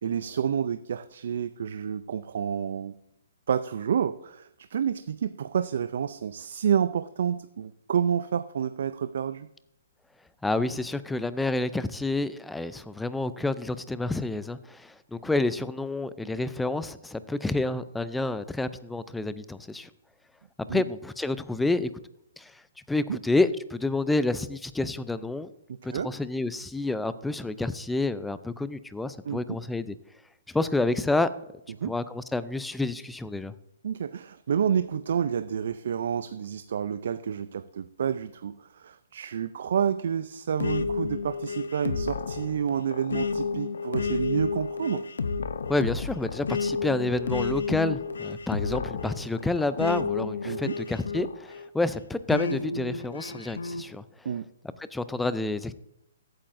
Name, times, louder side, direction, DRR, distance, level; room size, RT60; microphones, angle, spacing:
voice 1, 0.0-2.9 3.5-9.5 20.7-20.8 23.1-23.2 25.7-26.1 29.2-29.6 31.8-31.9 33.8-45.0 50.4-50.8 54.2-54.5, right 8 dB, 65° right, 13 dB, 0.4 m, -29 dB
voice 2, 10.4-19.9 20.7-21.9 22.4-22.6 22.9-25.5 25.8-30.0 30.5-31.3 31.8-33.5 45.7-54.3 54.9-55.7, left 2 dB, 5° left, 14 dB, 0.4 m, -29 dB
sound 1, 40.6-51.7 52.3-53.8, left 4 dB, 80° left, 0.6 m, -31 dB
14.5 x 8.7 x 2.6 m, 0.79 s
hypercardioid pair, 145°, 0 cm